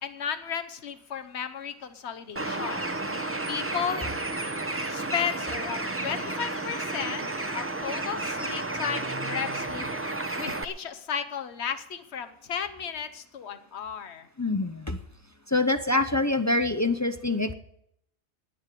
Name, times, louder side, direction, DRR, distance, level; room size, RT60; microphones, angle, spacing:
voice 1, 0.0-2.8 3.2-4.0 4.9-7.3 7.5-9.9 10.3-14.3, left 7 dB, 80° left, 10 dB, 1.2 m, -34 dB
Bird, 2.4-10.6, right 2 dB, 15° right, 0.6 m, -32 dB
voice 2, 14.4-15.0 15.5-17.5, left 2 dB, 25° left, 8 dB, 0.4 m, -25 dB
10.0 x 9.9 x 9.1 m, 0.76 s
omnidirectional pair, 1.1 m